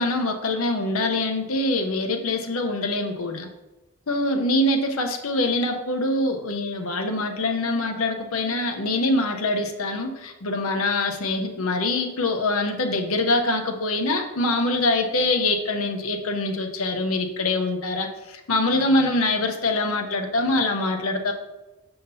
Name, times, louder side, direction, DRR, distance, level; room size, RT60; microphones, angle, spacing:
voice 1, 0.0-3.5 4.1-18.1 18.5-21.3, left 2 dB, 80° left, 4 dB, 0.8 m, -24 dB
6.6 x 5.8 x 2.7 m, 1.0 s
head